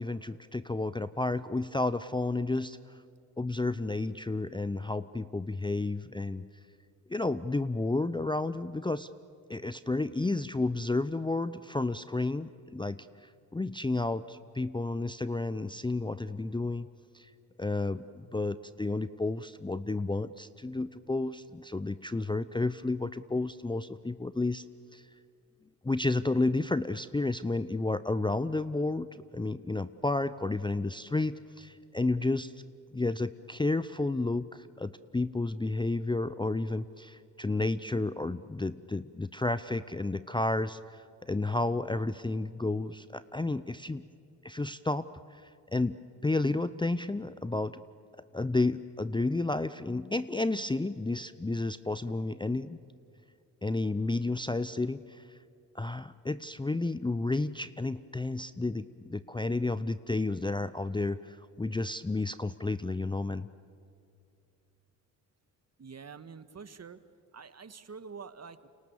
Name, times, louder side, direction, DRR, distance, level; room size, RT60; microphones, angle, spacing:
voice 1, 0.0-3.0 3.4-6.5 7.1-9.1 9.5-16.9 17.1-17.3 17.6-24.6 24.9-25.0 25.8-32.5 32.9-44.0 44.4-46.0 46.2-47.8 48.3-52.8 53.6-55.2 55.7-63.5, left 2 dB, 10° left, 14 dB, 0.7 m, -31 dB
voice 2, 65.8-67.0 67.3-68.7, right 5 dB, 40° right, 12 dB, 1.6 m, -46 dB
29.5 x 26.5 x 7.2 m, 2.5 s
hypercardioid pair, 50°, 42 cm